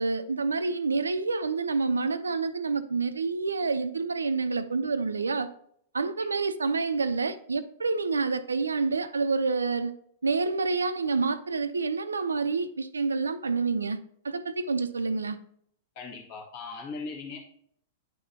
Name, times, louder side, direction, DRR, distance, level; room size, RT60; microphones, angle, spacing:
voice 1, 0.0-5.5 5.9-9.9 10.2-14.0 14.2-15.4, right 4 dB, 80° right, 0.4 m, -28 dB
voice 2, 15.9-17.4, left 4 dB, 45° left, 1.7 m, -39 dB
9.9 x 3.8 x 2.8 m
figure-of-eight pair, 100°, 0 cm